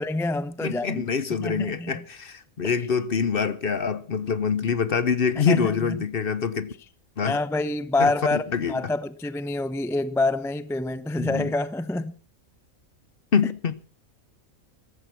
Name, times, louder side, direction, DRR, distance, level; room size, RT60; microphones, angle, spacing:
voice 1, 0.0-1.0 1.4-2.0 2.6-2.8 5.4-6.0 7.2-12.1, left 2 dB, 5° left, 0.4 m, -27 dB
voice 2, 0.6-6.7 7.2-7.4 8.0-8.7 11.2-11.5 13.3-13.8, left 6 dB, 45° left, 0.9 m, -25 dB
14.5 x 14.0 x 5.9 m
omnidirectional pair, 1.4 m